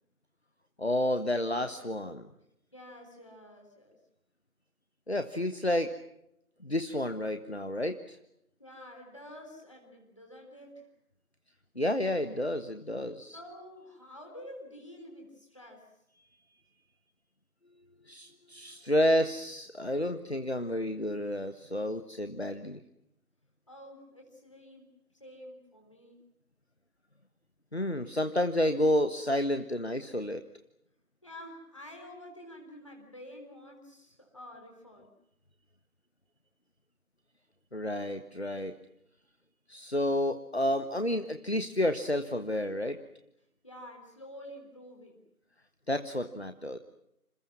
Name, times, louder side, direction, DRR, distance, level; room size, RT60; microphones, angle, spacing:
voice 1, 0.8-2.3 5.1-6.0 6.6-8.2 11.7-13.4 18.1-22.8 27.7-30.4 37.7-38.8 39.7-43.0 45.9-46.8, left 1 dB, 45° left, 9 dB, 1.4 m, -30 dB
voice 2, 2.7-4.0 8.6-10.8 13.3-15.9 23.7-24.9 25.2-26.2 31.2-35.1 43.6-45.2, left 1 dB, 20° left, 1 dB, 3.7 m, -49 dB
29.0 x 27.5 x 6.0 m, 0.79 s
figure-of-eight pair, 175°, 45 cm